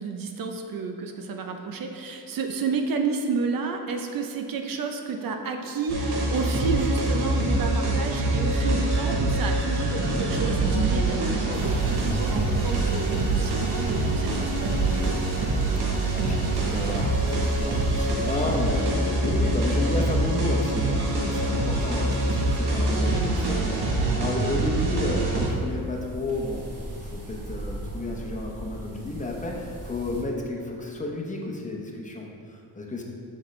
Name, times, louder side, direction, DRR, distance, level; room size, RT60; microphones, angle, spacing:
voice 1, 0.0-15.2 24.0-24.2, right 4 dB, 65° right, 5 dB, 0.7 m, -30 dB
sound 1, 5.9-25.5, right 2 dB, 85° right, 1.2 m, -25 dB
sound 2, 11.5-30.2, right 1 dB, 40° right, 1.4 m, -38 dB
voice 2, 15.8-26.6 27.0-33.0, left 2 dB, 20° left, -1 dB, 0.8 m, -32 dB
6.4 x 6.2 x 3.2 m, 2.5 s
cardioid pair, 110°, 37 cm